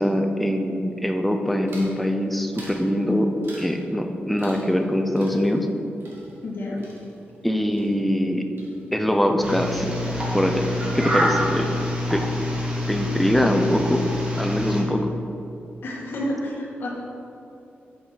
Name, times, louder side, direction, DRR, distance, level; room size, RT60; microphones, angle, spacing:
voice 1, 0.0-5.7 7.4-8.5 8.9-10.0 10.3-10.7 10.9-11.7 12.1-12.3 12.9-14.0 14.4-15.1, equal, ahead, 4 dB, 0.6 m, -23 dB
sound 1, 1.7-2.0 2.5-2.9 3.4-3.8 4.4-4.9 5.2-7.5 7.7-8.3 8.6-9.1, right 2 dB, 70° right, 2.2 m, -46 dB
voice 2, 6.4-6.8 15.8-16.9, left 1 dB, 65° left, -3 dB, 1.9 m, -29 dB
sound 2, 9.4-14.8, left 1 dB, 25° right, 1.5 m, -26 dB
8.0 x 6.2 x 6.2 m, 2.8 s
wide cardioid pair, 160°, 4 cm